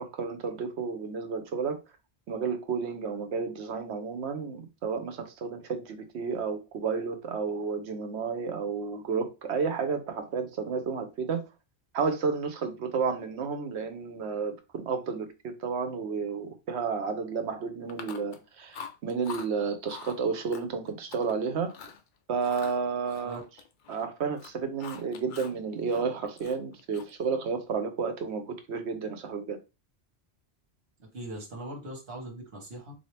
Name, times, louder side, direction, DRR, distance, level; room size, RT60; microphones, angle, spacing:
voice 1, 0.0-1.8 2.3-11.4 11.9-21.7 22.3-23.4 23.9-29.6, right 5 dB, 80° right, 1.0 m, -31 dB
Chewing mastication, 17.9-18.4 18.7-19.5 19.9-20.2 20.5-21.3 21.7-22.0 22.4-24.1 24.3-25.6 25.9-27.2, left 6 dB, 55° left, 0.6 m, -44 dB
voice 2, 31.0-32.9, right 1 dB, 65° right, 1.5 m, -40 dB
3.7 x 2.7 x 3.2 m
omnidirectional pair, 1.1 m